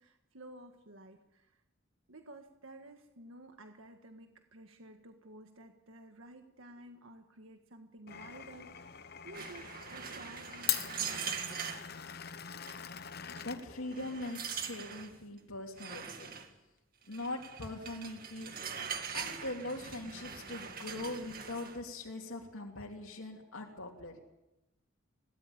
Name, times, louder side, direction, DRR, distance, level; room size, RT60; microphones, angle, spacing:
voice 1, 0.0-1.6 2.1-11.7, right 1 dB, 75° right, 5 dB, 1.7 m, -53 dB
Glass, 8.1-14.3, left 10 dB, 50° left, 0.9 m, -42 dB
sound 1, 9.3-11.9 12.7-12.9 13.4-13.5 13.9-15.1 15.8-16.5 17.1-21.8, right 7 dB, 45° right, 2.2 m, -42 dB
voice 2, 13.3-16.3 17.1-18.5 18.8-24.2, left 2 dB, 85° left, 0 dB, 2.9 m, -42 dB
21.5 x 18.5 x 8.7 m, 0.95 s
head